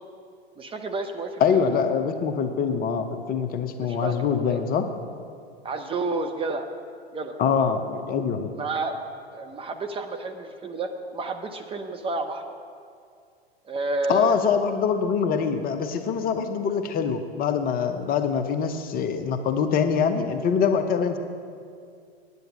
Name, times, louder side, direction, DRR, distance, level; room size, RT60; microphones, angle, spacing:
voice 1, 0.6-1.6 3.8-4.6 5.6-6.7 7.1-7.4 8.5-9.0 9.3-12.4 13.6-14.4, right 3 dB, 15° right, 5 dB, 0.8 m, -30 dB
voice 2, 1.4-4.9 7.4-8.5 14.1-21.2, left 6 dB, 30° left, 7 dB, 0.7 m, -24 dB
9.3 x 9.0 x 7.1 m, 2.3 s
hypercardioid pair, 105°, 32 cm